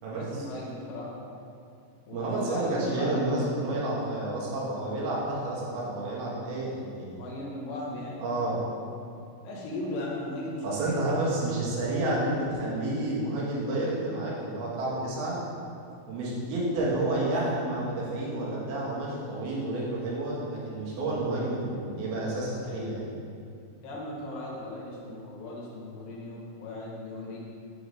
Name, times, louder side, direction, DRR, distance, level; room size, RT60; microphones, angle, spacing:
voice 1, 0.1-1.2 2.1-3.3 7.2-8.3 9.4-11.0 22.6-23.1 23.8-27.4, left 1 dB, 75° left, -5 dB, 2.5 m, -37 dB
voice 2, 2.1-7.2 8.2-8.6 10.6-15.4 16.1-23.0, right 2 dB, 90° right, -5 dB, 3.1 m, -30 dB
6.7 x 3.1 x 5.2 m, 2.5 s
omnidirectional pair, 4.3 m